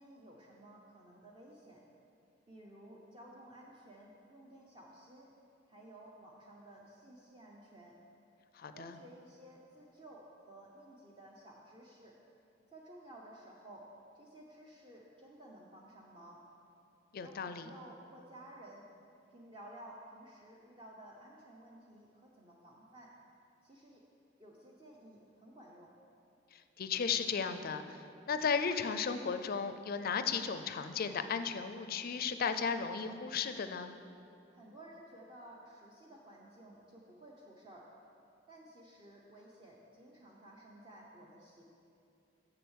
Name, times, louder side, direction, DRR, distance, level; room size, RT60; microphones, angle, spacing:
voice 1, 0.0-1.8 2.5-5.3 5.7-8.0 8.7-12.2 12.7-16.4 17.2-18.9 19.3-23.1 23.6-24.0 24.4-25.9 34.5-37.9 38.5-41.7, right 1 dB, 25° right, -3 dB, 0.7 m, -55 dB
voice 2, 8.5-9.0 17.1-17.7 26.5-33.9, left 6 dB, 50° left, 10 dB, 0.4 m, -35 dB
7.0 x 6.8 x 6.3 m, 2.6 s
head